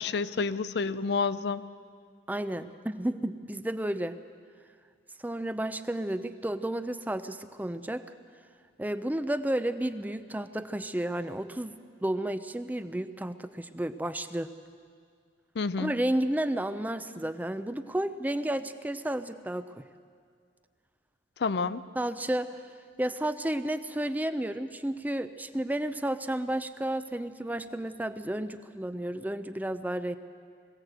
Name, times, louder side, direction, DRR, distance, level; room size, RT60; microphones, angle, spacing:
voice 1, 0.0-1.6 15.6-15.9 21.4-21.8, left 4 dB, 65° left, 14 dB, 0.5 m, -29 dB
voice 2, 2.3-4.2 5.2-8.0 8.8-14.5 15.8-19.8 22.0-22.5 23.0-30.2, right 1 dB, 10° right, 11 dB, 0.5 m, -32 dB
21.0 x 15.5 x 8.0 m, 2.1 s
head